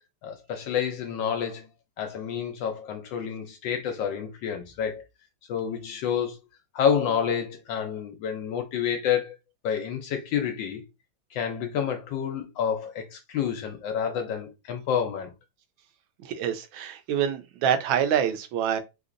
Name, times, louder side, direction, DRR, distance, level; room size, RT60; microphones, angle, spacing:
voice 1, 0.2-1.7 2.0-5.0 5.5-6.4 6.7-9.3 9.6-10.8 11.3-15.3, left 8 dB, 75° left, 1.2 m, -29 dB
voice 2, 16.2-18.8, right 9 dB, 80° right, 1.4 m, -26 dB
3.4 x 2.8 x 2.5 m
omnidirectional pair, 2.1 m